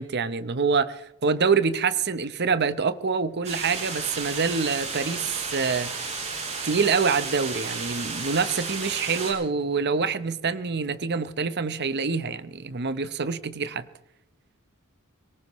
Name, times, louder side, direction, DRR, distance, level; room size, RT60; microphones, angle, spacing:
voice 1, 0.0-5.9 6.6-13.9, right 5 dB, 50° right, 0.9 m, -26 dB
sound 1, 3.4-9.3, right 4 dB, 30° right, 5.8 m, -33 dB
25.0 x 18.5 x 3.1 m
head